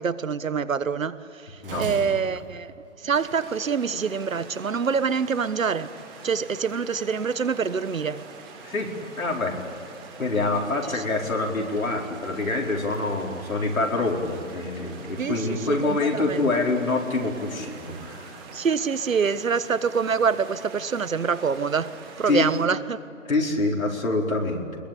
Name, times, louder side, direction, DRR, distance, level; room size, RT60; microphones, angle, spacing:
voice 1, 0.0-2.7 3.0-5.9 6.2-8.2 15.2-16.4 18.5-23.0, right 6 dB, 75° right, 1.3 m, -26 dB
voice 2, 1.6-2.2 8.6-9.6 10.2-18.4 22.2-22.4 23.2-24.7, left 3 dB, 90° left, 4.7 m, -26 dB
sound 1, 1.6-3.9, right 6 dB, 40° right, 1.3 m, -39 dB
sound 2, 3.1-22.6, right 4 dB, 15° right, 2.7 m, -44 dB
23.0 x 22.0 x 8.5 m
figure-of-eight pair, 155°, 40 cm